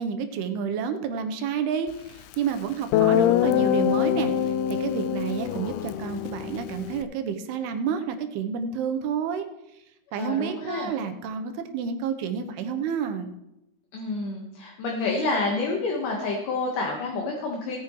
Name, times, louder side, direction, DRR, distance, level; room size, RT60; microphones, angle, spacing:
voice 1, 0.0-9.5 10.1-13.3, right 7 dB, 85° right, 7 dB, 2.8 m, -30 dB
Guitar, 2.3-2.4 2.9-7.0, left 10 dB, 85° left, 2.5 m, -24 dB
voice 2, 10.2-10.9 13.9-17.8, left 3 dB, 60° left, 0 dB, 2.7 m, -28 dB
18.0 x 9.5 x 3.1 m, 0.88 s
omnidirectional pair, 4.6 m